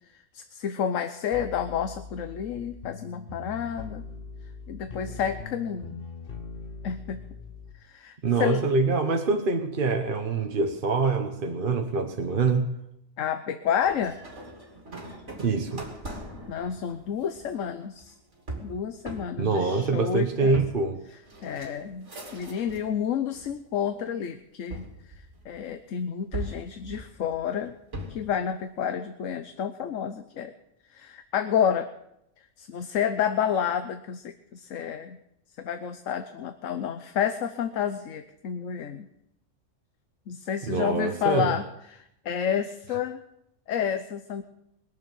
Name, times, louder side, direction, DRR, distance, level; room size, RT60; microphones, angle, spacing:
voice 1, 0.3-4.0 4.7-6.0 6.8-7.2 7.8-8.6 13.2-14.2 16.5-18.2 18.6-20.6 21.4-27.7 28.1-30.5 30.9-31.9 32.6-35.2 35.6-39.1 40.3-43.2 43.7-44.4, left 8 dB, 70° left, 9 dB, 1.2 m, -30 dB
sound 1, 1.3-7.7, left 4 dB, 40° left, 1.4 m, -41 dB
voice 2, 8.2-12.7 15.4-15.9 19.4-21.0 40.6-41.6, right 4 dB, 40° right, 4 dB, 1.2 m, -25 dB
sound 2, 13.8-23.0 23.3-24.0 24.7-25.8 26.3-28.4, right 1 dB, 60° right, 3.1 m, -41 dB
21.5 x 7.3 x 9.1 m, 0.82 s
omnidirectional pair, 1.4 m